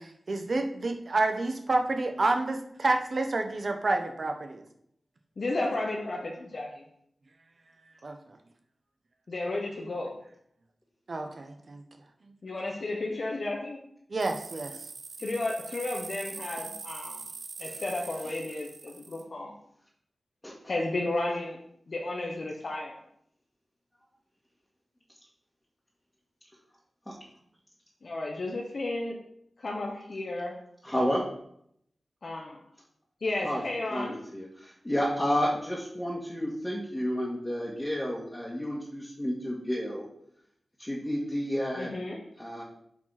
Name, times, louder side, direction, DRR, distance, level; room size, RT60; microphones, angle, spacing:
voice 1, 0.0-4.6 8.0-8.1 11.1-11.8 14.1-14.7, right 2 dB, 55° right, 5 dB, 1.2 m, -29 dB
voice 2, 5.4-6.8 9.3-10.2 12.4-13.8 15.2-17.2 17.6-19.5 20.7-21.6 21.9-23.0 28.0-29.2 29.6-30.6 32.2-32.6 33.2-34.2 41.8-42.2, left 2 dB, 65° left, -1 dB, 1.2 m, -33 dB
sound 1, 14.2-19.2, right 4 dB, 85° right, 0.7 m, -43 dB
voice 3, 30.8-31.2 33.4-40.1 40.8-41.9 42.4-42.6, equal, 15° left, -7 dB, 2.0 m, -31 dB
8.2 x 5.0 x 4.3 m, 0.70 s
cardioid pair, 60°, 0 cm